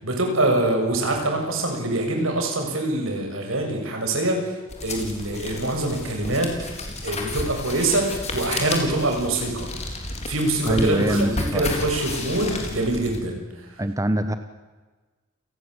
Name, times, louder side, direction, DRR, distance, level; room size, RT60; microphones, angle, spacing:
voice 1, 0.0-4.5 4.8-6.8 7.0-9.7 10.3-13.4, right 2 dB, 75° right, 2 dB, 7.1 m, -24 dB
sound 1, 4.7-13.2, left 2 dB, 35° left, 4.5 m, -32 dB
voice 2, 10.7-11.6 13.8-14.3, right 1 dB, 15° right, 9 dB, 1.1 m, -23 dB
29.5 x 19.0 x 8.1 m, 1.3 s
head